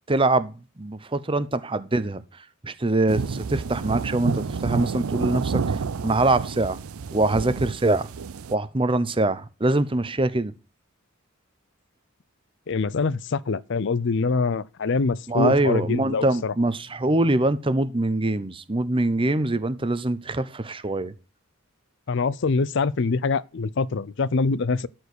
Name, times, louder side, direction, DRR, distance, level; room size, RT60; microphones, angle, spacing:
voice 1, 0.1-2.2 2.6-6.8 7.1-8.1 8.5-10.5 15.3-21.1, right 2 dB, 25° right, 0.8 m, -24 dB
sound 1, 3.1-8.6, right 5 dB, 90° right, 0.5 m, -29 dB
voice 2, 12.7-16.5 22.1-24.9, left 4 dB, 60° left, 0.5 m, -24 dB
13.0 x 4.6 x 8.2 m
head